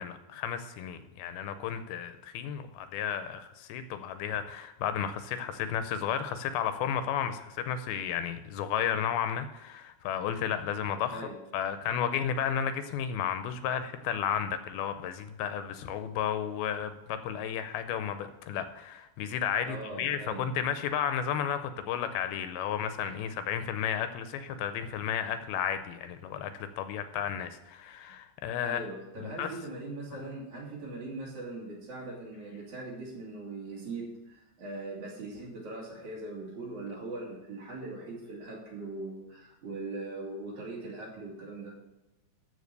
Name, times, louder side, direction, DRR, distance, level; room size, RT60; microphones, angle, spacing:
voice 1, 0.0-28.8 29.2-29.5, left 8 dB, 80° left, 10 dB, 2.5 m, -33 dB
voice 2, 19.7-20.5 28.6-41.7, right 2 dB, 50° right, -3 dB, 3.5 m, -40 dB
13.5 x 4.8 x 6.6 m, 0.98 s
omnidirectional pair, 4.5 m